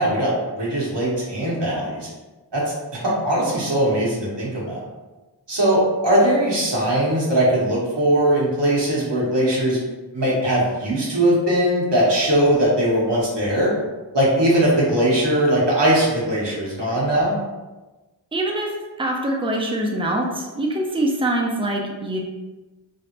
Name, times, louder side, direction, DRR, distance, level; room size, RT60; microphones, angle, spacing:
voice 1, 0.0-2.1 2.5-2.6 3.0-4.8 5.5-9.8 10.1-13.7 14.1-17.3, right 1 dB, 65° right, -5 dB, 1.2 m, -20 dB
voice 2, 18.3-22.2, right 1 dB, 10° right, 0 dB, 0.6 m, -24 dB
3.3 x 2.4 x 2.9 m, 1.2 s
wide cardioid pair, 45°, 45 cm